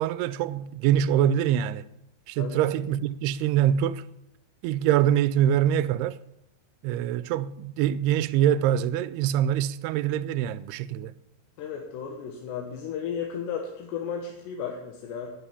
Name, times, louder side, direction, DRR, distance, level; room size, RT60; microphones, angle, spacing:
voice 1, 0.0-1.9 2.3-4.1 4.6-6.2 6.8-11.1, right 10 dB, 80° right, 2.5 m, -24 dB
voice 2, 11.6-15.3, left 7 dB, 85° left, 3.4 m, -34 dB
11.5 x 10.5 x 7.0 m
omnidirectional pair, 4.8 m